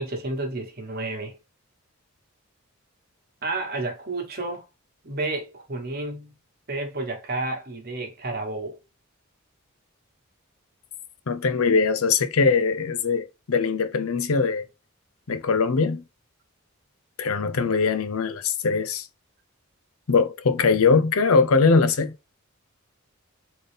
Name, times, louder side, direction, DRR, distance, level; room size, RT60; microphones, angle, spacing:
voice 1, 0.0-1.3 3.4-4.7 5.0-6.4 6.7-8.8, right 2 dB, 45° right, 1.3 m, -31 dB
voice 2, 11.3-14.6 15.3-16.0 17.2-19.1 20.1-22.1, left 4 dB, 80° left, 0.6 m, -21 dB
3.9 x 3.7 x 3.4 m
head